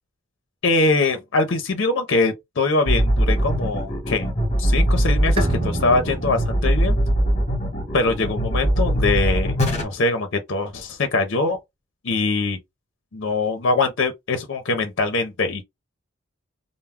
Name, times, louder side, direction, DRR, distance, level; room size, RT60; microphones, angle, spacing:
voice 1, 0.6-4.3 4.6-7.0 7.9-11.6 12.0-12.6 13.1-15.6, left 3 dB, 60° left, 0.5 m, -22 dB
sound 1, 2.9-9.8, right 1 dB, 30° left, 0.9 m, -21 dB
Bowed string instrument, 5.4-8.8, right 2 dB, 25° right, 0.4 m, -32 dB
2.2 x 2.0 x 3.4 m
head